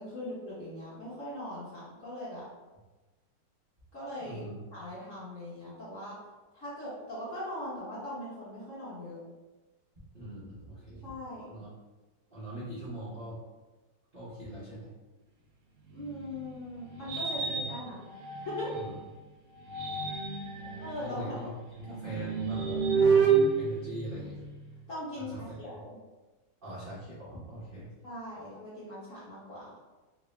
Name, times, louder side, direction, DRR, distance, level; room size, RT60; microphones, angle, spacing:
voice 1, 0.0-2.4 3.9-4.4 4.7-6.2 6.5-9.2 11.0-11.5 15.9-18.0 18.5-18.7 20.8-21.5 24.9-26.0 28.0-29.7, left 1 dB, 50° left, -9 dB, 1.0 m, -40 dB
voice 2, 4.2-4.6 10.1-11.0 11.5-11.7 12.3-13.4 14.1-14.9 18.7-19.0 20.6-21.5 21.8-24.4 25.2-25.4 26.6-27.9, right 1 dB, 70° right, -11 dB, 0.5 m, -42 dB
sound 1, 15.9-19.0 19.5-24.7, right 5 dB, 90° right, 0.9 m, -30 dB
3.8 x 2.0 x 3.1 m, 1.2 s
omnidirectional pair, 2.4 m